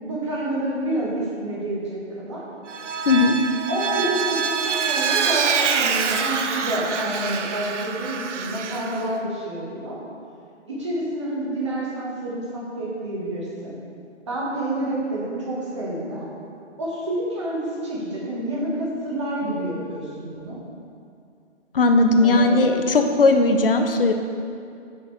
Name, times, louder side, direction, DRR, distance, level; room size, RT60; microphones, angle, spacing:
voice 1, 0.0-2.4 3.7-10.0 10.7-13.8 14.3-16.3 16.8-20.6 22.2-22.6, right 1 dB, 25° right, -5 dB, 1.1 m, -28 dB
Vehicle, 2.7-9.1, right 6 dB, 80° right, 0.6 m, -25 dB
voice 2, 3.1-3.4 21.7-24.1, left 3 dB, 50° left, 5 dB, 0.6 m, -17 dB
6.1 x 5.9 x 4.5 m, 2.4 s
hypercardioid pair, 175°, 36 cm